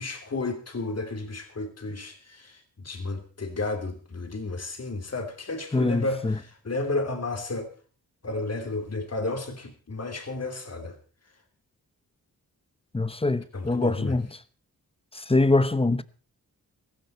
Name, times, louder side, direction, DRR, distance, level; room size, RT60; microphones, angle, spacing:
voice 1, 0.0-7.7 8.2-11.0 13.5-14.2, left 2 dB, 45° left, 3.1 m, -32 dB
voice 2, 5.7-6.4 12.9-14.2 15.1-16.0, left 2 dB, 15° left, 0.9 m, -24 dB
16.0 x 15.5 x 4.4 m
wide cardioid pair, 95°, 35 cm